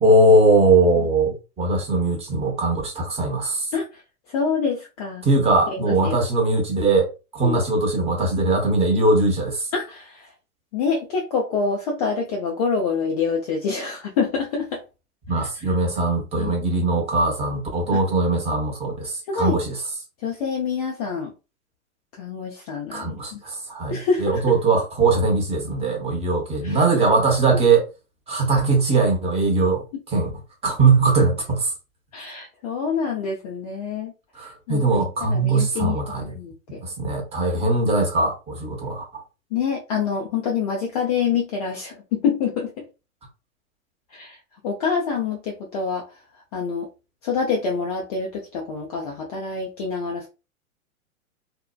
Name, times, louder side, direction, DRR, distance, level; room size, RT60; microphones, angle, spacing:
voice 1, 0.0-3.7 5.2-9.7 15.3-19.7 22.9-27.9 28.3-30.3 30.6-31.7 34.3-36.2 36.8-39.2, right 2 dB, 15° right, 0.7 m, -20 dB
voice 2, 4.3-5.3 5.7-6.2 7.4-7.6 9.7-10.3 10.7-14.8 15.3-15.7 16.3-16.5 17.9-18.0 19.3-19.6 20.2-21.3 22.1-23.4 23.9-24.5 26.6-27.1 32.1-34.1 34.4-36.8 39.5-42.9 44.1-44.4 44.6-46.2 46.5-46.9 47.2-50.3, left 5 dB, 30° left, 0.4 m, -26 dB
2.7 x 2.0 x 2.3 m
hypercardioid pair, 110°, 43 cm